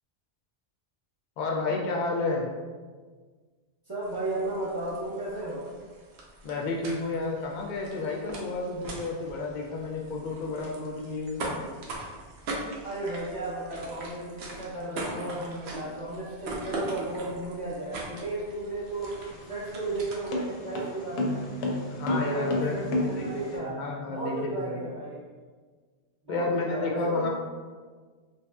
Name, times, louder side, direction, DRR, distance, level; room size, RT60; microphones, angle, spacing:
voice 1, 1.4-2.5 6.4-11.4 21.9-24.8 26.3-27.3, left 3 dB, 55° left, 0 dB, 0.5 m, -31 dB
voice 2, 3.9-5.6 12.8-19.1 19.5-21.5 22.1-23.8 24.1-25.2 26.2-27.3, right 2 dB, 25° right, -11 dB, 0.5 m, -34 dB
sound 1, 4.0-20.5, right 2 dB, 80° right, 0.8 m, -41 dB
sound 2, 18.8-23.6, left 1 dB, 80° left, 0.8 m, -31 dB
3.1 x 2.6 x 2.3 m, 1.5 s
omnidirectional pair, 1.1 m